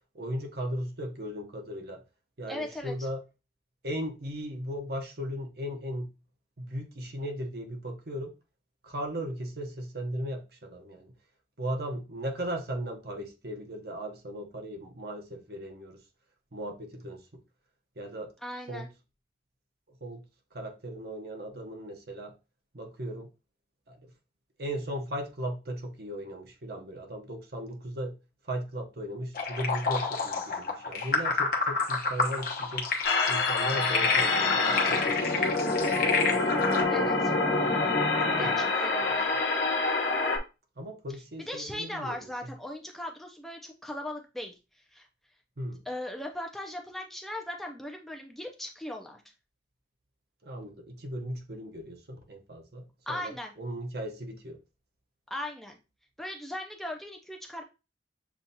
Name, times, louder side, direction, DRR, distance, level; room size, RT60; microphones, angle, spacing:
voice 1, 0.1-2.0 2.4-3.2 3.8-6.1 6.6-8.3 8.8-11.1 11.6-16.0 16.5-17.4 18.0-18.3 18.7-18.9 19.9-20.2 20.5-22.3 22.7-23.3 23.9-24.1 24.6-28.2 28.5-32.9 33.3-36.1 37.6-37.8 38.3-38.6 40.8-42.5 45.6-45.8 50.4-54.6, equal, 55° right, 0.8 m, -37 dB
voice 2, 2.5-3.1 18.4-18.9 36.9-37.3 38.4-39.3 41.5-45.1 45.9-49.2 53.1-53.5 55.3-55.8 56.2-57.6, left 1 dB, ahead, 0.5 m, -38 dB
sound 1, 29.3-36.8, left 4 dB, 50° left, 0.9 m, -29 dB
sound 2, 33.0-40.4, left 3 dB, 70° left, 1.0 m, -26 dB
7.0 x 2.4 x 2.7 m
head